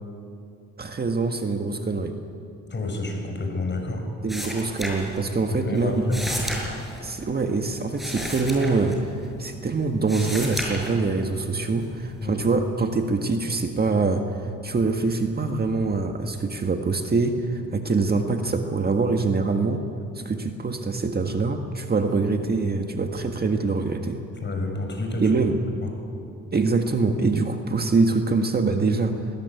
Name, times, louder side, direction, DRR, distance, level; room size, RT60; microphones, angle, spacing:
voice 1, 0.8-2.1 4.2-6.0 7.0-19.8 20.2-24.2 25.2-25.6 26.5-29.2, right 3 dB, 30° right, 4 dB, 1.7 m, -24 dB
voice 2, 2.7-4.1 5.5-6.4 12.2-12.4 24.4-25.4, left 2 dB, 35° left, 3 dB, 6.3 m, -29 dB
sound 1, 4.3-5.5 5.7-9.5 9.9-11.3 11.8-12.4, equal, ahead, 6.8 m, -33 dB
20.0 x 20.0 x 9.5 m, 2.5 s
cardioid pair, 90°, 30 cm